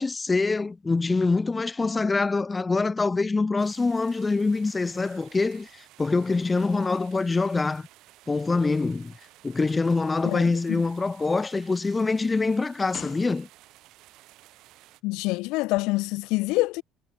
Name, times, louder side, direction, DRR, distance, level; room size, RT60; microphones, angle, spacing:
voice 1, 0.0-7.9 8.3-9.1 9.4-13.5, left 3 dB, 15° left, 0.6 m, -25 dB
sound 1, 3.6-15.0, right 17 dB, 75° right, 3.8 m, -54 dB
voice 2, 10.2-10.8 15.0-16.8, left 22 dB, 90° left, 0.5 m, -26 dB
sound 2, 10.8-13.9 14.7-14.9, left 9 dB, 45° left, 2.9 m, -46 dB
cardioid pair, 135°, 0 cm